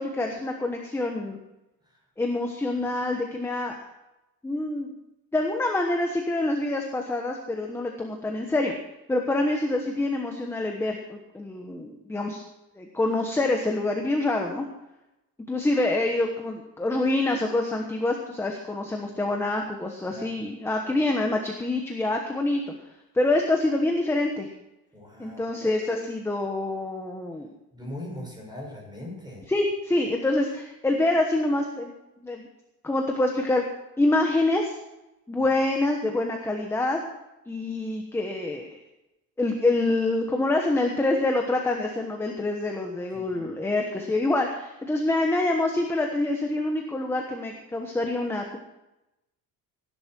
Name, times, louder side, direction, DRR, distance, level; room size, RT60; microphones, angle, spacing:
voice 1, 0.0-1.4 2.2-3.9 4.4-4.9 5.3-8.7 9.1-12.4 12.8-14.7 15.5-22.7 23.1-24.5 25.2-27.5 29.5-31.9 32.2-32.5 32.8-33.7 34.0-34.8 35.3-37.0 37.5-38.8 39.4-48.6, left 2 dB, 5° left, 2 dB, 1.2 m, -26 dB
voice 2, 20.1-20.4 24.9-25.4 27.7-29.4 43.3-43.4, left 1 dB, 10° right, -2 dB, 6.4 m, -39 dB
17.0 x 11.0 x 4.5 m, 0.94 s
cardioid pair, 165°, 36 cm